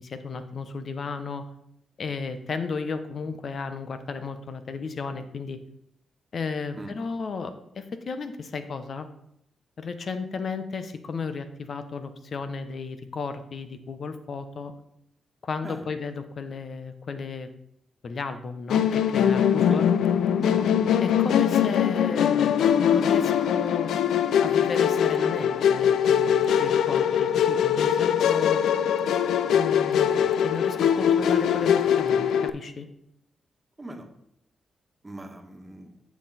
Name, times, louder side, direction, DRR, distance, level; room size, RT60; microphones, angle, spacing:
voice 1, 0.0-1.4 2.0-5.6 6.3-9.1 9.8-14.7 15.4-17.5 18.0-19.9 21.0-23.9 24.4-28.6 29.5-30.2 30.4-32.9, left 4 dB, 60° left, 10 dB, 1.0 m, -34 dB
Musical instrument, 18.7-32.5, left 8 dB, 80° left, 0.4 m, -22 dB
voice 2, 20.3-20.7 30.2-30.3 33.8-34.1 35.0-35.9, right 1 dB, 20° right, 3 dB, 1.7 m, -39 dB
8.6 x 6.0 x 4.3 m, 0.76 s
cardioid pair, 65°, 0 cm